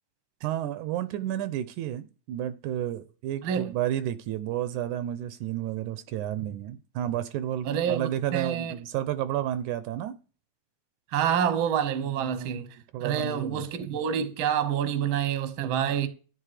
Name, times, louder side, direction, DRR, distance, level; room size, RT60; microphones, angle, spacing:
voice 1, 0.4-10.1 12.0-12.6 12.9-13.7, right 11 dB, 80° right, 2.1 m, -31 dB
voice 2, 3.4-3.7 7.6-8.7 11.1-12.7 13.0-16.1, right 8 dB, 55° right, 1.5 m, -27 dB
12.5 x 8.6 x 4.9 m
omnidirectional pair, 3.7 m